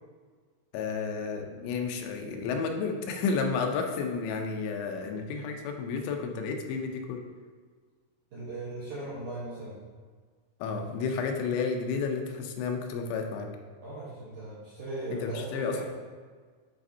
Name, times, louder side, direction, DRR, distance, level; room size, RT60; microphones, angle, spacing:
voice 1, 0.7-7.2 10.6-13.5 15.1-15.8, left 5 dB, 90° left, 3 dB, 3.0 m, -31 dB
voice 2, 8.3-9.8 13.8-15.8, right 2 dB, 75° right, -9 dB, 1.8 m, -38 dB
10.5 x 4.2 x 2.7 m, 1.5 s
omnidirectional pair, 5.1 m